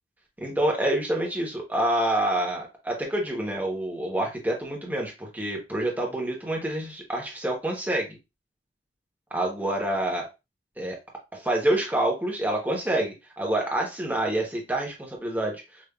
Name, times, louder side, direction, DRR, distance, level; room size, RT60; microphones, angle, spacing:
voice 1, 0.4-8.2 9.3-10.3 10.8-11.0 11.4-15.6, right 1 dB, 10° right, -1 dB, 0.9 m, -27 dB
5.0 x 2.5 x 2.3 m, 0.26 s
head